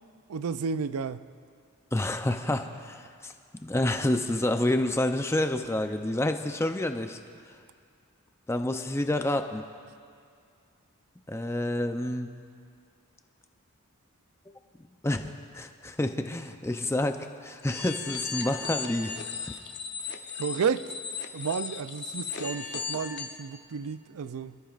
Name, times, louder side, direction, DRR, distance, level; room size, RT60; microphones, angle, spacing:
voice 1, 0.3-1.3 20.4-20.9 21.3-24.6, right 6 dB, 80° right, 13 dB, 0.4 m, -32 dB
voice 2, 1.9-3.3 3.6-7.2 7.5-7.6 8.5-9.6 11.3-12.3 15.0-19.5, left 1 dB, 10° left, 6 dB, 0.5 m, -29 dB
sound 1, 17.6-23.4, left 6 dB, 50° left, 0.8 m, -36 dB
26.5 x 13.5 x 2.5 m, 2.3 s
head